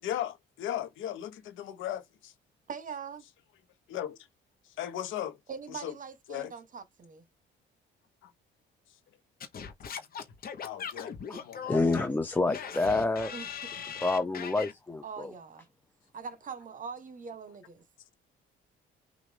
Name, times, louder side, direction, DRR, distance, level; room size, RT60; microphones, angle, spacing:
voice 1, 0.0-2.3 3.9-4.2 4.8-5.4 5.7-5.9 6.3-6.5 8.2-8.3 10.6-11.1 11.5-11.8, left 11 dB, 80° left, 1.0 m, -36 dB
voice 2, 2.7-3.2 5.5-7.2 13.3-13.7 14.0-14.1 15.0-15.7 16.1-17.8, right 6 dB, 40° right, 1.2 m, -42 dB
Singing / Scratching (performance technique), 9.4-14.7, left 7 dB, 50° left, 1.0 m, -40 dB
voice 3, 11.7-13.3 14.0-15.3, left 3 dB, 10° left, 0.5 m, -28 dB
6.0 x 2.6 x 3.4 m
cardioid pair, 105°, 20 cm